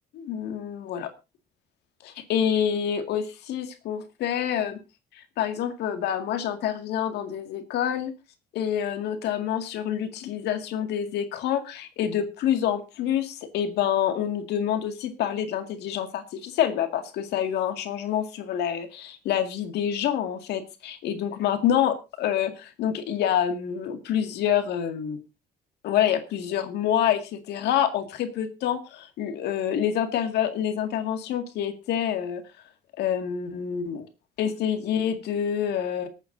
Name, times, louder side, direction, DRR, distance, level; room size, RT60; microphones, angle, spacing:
voice 1, 0.1-1.1 2.0-4.8 5.1-8.1 8.5-25.2 25.8-32.4 33.0-34.1 34.4-36.1, left 9 dB, 80° left, 8 dB, 2.1 m, -27 dB
25.5 x 8.9 x 2.6 m, 0.28 s
cardioid pair, 110°, 17 cm